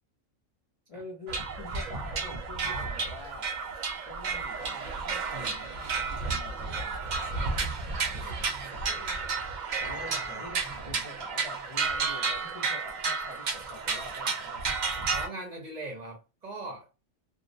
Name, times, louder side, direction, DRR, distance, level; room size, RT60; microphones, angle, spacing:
voice 1, 0.9-3.5 4.1-14.6, left 2 dB, 65° left, 0.3 m, -47 dB
sound 1, 1.3-15.3, right 4 dB, 85° right, 0.4 m, -32 dB
voice 2, 9.8-10.4 10.8-11.0 15.1-16.9, right 2 dB, 40° right, 0.8 m, -41 dB
2.4 x 2.0 x 2.6 m
omnidirectional pair, 1.4 m